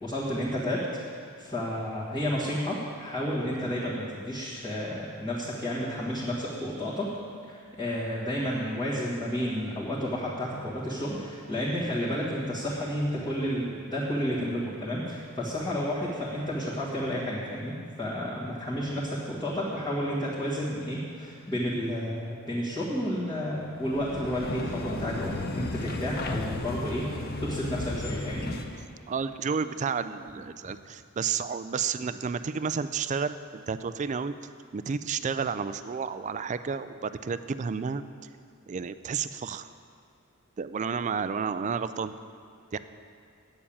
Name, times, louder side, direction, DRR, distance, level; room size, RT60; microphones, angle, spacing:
voice 1, 0.0-7.1 7.5-27.1 27.4-28.5, equal, 20° left, -9 dB, 1.7 m, -31 dB
sound 1, 23.8-28.8, left 2 dB, 45° left, 0.7 m, -34 dB
voice 2, 29.1-34.3 34.7-38.0 38.7-39.7 40.6-42.1 42.7-42.8, right 6 dB, 35° right, 12 dB, 0.3 m, -31 dB
8.7 x 7.1 x 8.5 m, 2.3 s
head